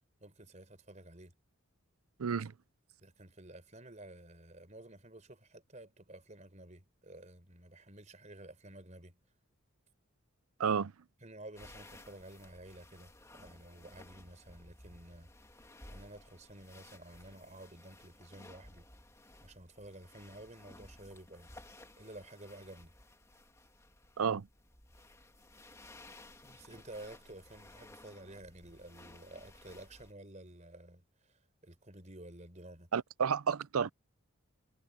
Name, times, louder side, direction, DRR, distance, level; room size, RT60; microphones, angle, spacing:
voice 1, 0.2-1.3 3.0-9.2 11.2-15.3 15.9-18.9 19.4-21.5 22.0-22.9 26.4-32.9, right 1 dB, 35° right, 4.5 m, -52 dB
voice 2, 2.2-2.5 10.6-10.9 24.2-24.5 32.9-33.9, right 6 dB, 85° right, 0.5 m, -31 dB
sound 1, 11.5-30.1, left 1 dB, 15° left, 2.8 m, -57 dB
head